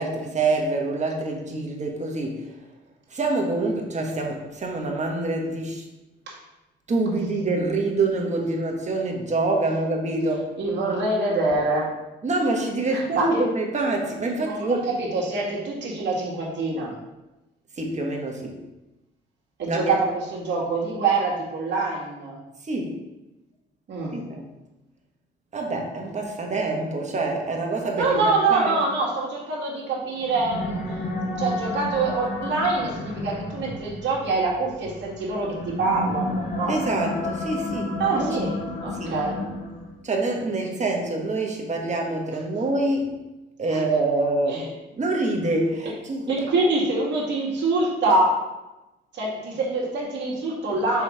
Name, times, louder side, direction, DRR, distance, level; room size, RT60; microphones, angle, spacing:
voice 1, 0.0-2.5 3.1-5.8 6.9-10.5 12.2-14.8 17.8-18.6 19.7-20.0 22.6-22.9 24.1-24.4 25.5-28.8 36.7-38.4 39.0-39.2 40.0-43.2 43.6-44.7 45.0-46.5, right 2 dB, 35° right, 1 dB, 1.4 m, -26 dB
voice 2, 10.6-11.9 12.9-13.5 14.4-16.9 19.6-22.4 23.9-24.2 28.0-30.8 31.3-36.8 38.0-38.5 38.8-39.3 43.7-43.8 44.5-44.6 46.3-48.3 49.1-51.0, right 3 dB, 65° right, -4 dB, 2.1 m, -25 dB
sound 1, 30.2-40.0, left 2 dB, 50° left, 1.3 m, -32 dB
5.6 x 4.2 x 5.0 m, 1.0 s
cardioid pair, 90°, 20 cm